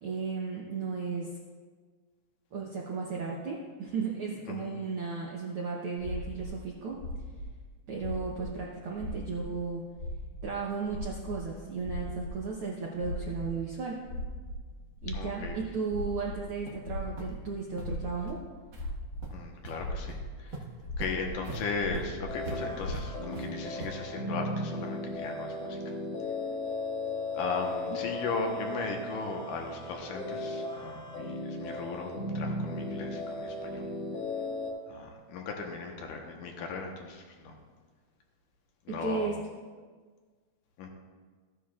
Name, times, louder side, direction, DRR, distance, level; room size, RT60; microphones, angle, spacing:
voice 1, 0.0-1.3 2.5-7.0 7.9-9.8 10.4-14.0 15.0-18.4 27.9-28.0 38.9-39.3, right 4 dB, 75° right, -2 dB, 1.2 m, -35 dB
sound 1, 6.0-6.5 7.0-7.5 8.0-8.5 8.8-9.5 9.8-12.4 13.0-13.6 13.9-17.5 17.8-18.4 18.7-19.4 19.7-20.3 20.8-21.3 21.7-22.3 22.7-22.9, left 2 dB, 30° left, 3.7 m, -38 dB
voice 2, 15.1-15.6 19.3-20.6 21.0-26.0 27.3-33.9 34.9-37.6 38.9-39.3 40.8-40.9, left 4 dB, 85° left, 2 dB, 2.7 m, -37 dB
sound 2, 16.2-16.3 16.7-16.8 17.2-17.3 17.7-17.8 18.3-18.4 18.7-18.9 19.2-19.7 20.1-20.2 20.5-24.2, right 2 dB, 45° right, 1.5 m, -42 dB
sound 3, 22.3-34.7, left 2 dB, 55° left, 2.3 m, -36 dB
15.0 x 9.9 x 2.4 m, 1.5 s
omnidirectional pair, 3.7 m